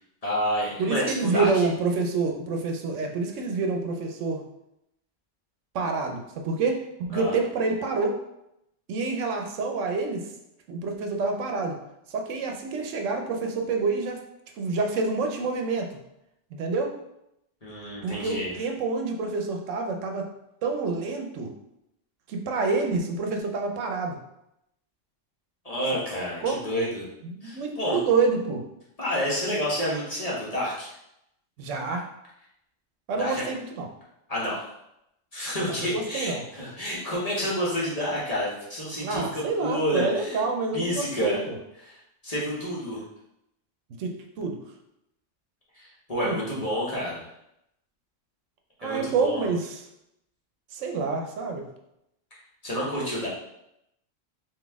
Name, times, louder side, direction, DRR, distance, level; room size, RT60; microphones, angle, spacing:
voice 1, 0.2-1.5 7.1-7.3 17.6-18.5 25.6-27.0 27.4-28.0 29.0-30.9 33.2-33.5 34.3-34.6 35.3-40.4 40.7-41.4 41.8-42.0 42.2-43.0 45.7-47.2 48.8-49.4 52.6-53.3, equal, 30° left, -7 dB, 1.1 m, -29 dB
voice 2, 0.8-4.4 5.7-6.8 7.1-8.2 8.9-10.3 10.7-11.8 12.1-14.2 14.6-15.9 16.5-16.9 18.0-20.3 20.6-21.5 22.3-24.2 25.9-26.0 26.4-26.6 27.2-28.6 31.6-32.1 33.1-33.9 35.8-36.4 39.0-41.6 44.0-44.6 46.2-46.6 48.8-49.8 50.7-51.6, right 4 dB, 80° right, 3 dB, 1.0 m, -27 dB
4.0 x 2.7 x 3.4 m, 0.82 s
omnidirectional pair, 1.3 m